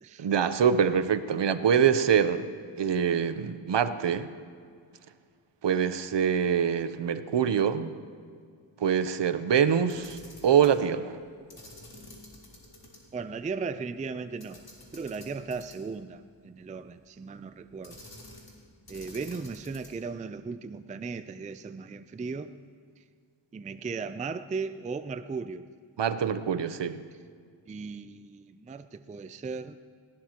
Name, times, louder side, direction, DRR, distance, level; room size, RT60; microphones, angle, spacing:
voice 1, 0.2-2.4 2.8-4.3 5.6-7.9 8.8-10.2 10.4-11.2 26.0-27.0, right 7 dB, 65° right, 11 dB, 0.7 m, -24 dB
Camera, 9.9-10.8 11.5-13.0 13.3-13.4 14.4-16.0 17.8-18.6 18.9-20.1, left 1 dB, 50° left, 3.3 m, -49 dB
voice 2, 13.1-14.6 14.9-18.0 18.9-22.5 23.5-25.6 27.7-29.8, right 4 dB, 20° right, 11 dB, 0.3 m, -36 dB
19.0 x 17.0 x 2.9 m, 2.1 s
wide cardioid pair, 125°, 47 cm